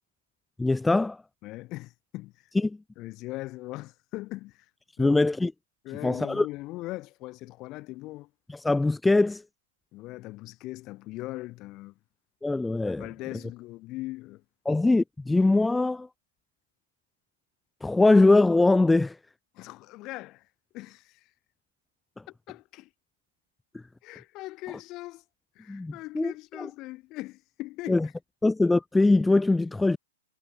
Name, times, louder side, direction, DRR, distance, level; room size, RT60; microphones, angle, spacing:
voice 1, 0.6-1.2 2.6-2.8 5.0-5.5 6.0-6.5 8.5-9.4 12.4-13.1 14.7-16.1 17.8-19.2 23.7-23.8 25.7-26.3 26.6-26.7 27.9-28.1 28.4-30.0, left 2 dB, 5° left, 0.6 m, -22 dB
voice 2, 1.4-2.3 3.0-4.7 5.0-5.2 5.8-8.3 9.9-11.9 13.0-14.4 19.5-20.5 20.7-21.2 22.3-22.9 24.0-25.2 25.6-28.1, left 19 dB, 35° left, 4.1 m, -40 dB
hypercardioid pair, 130°, 0 cm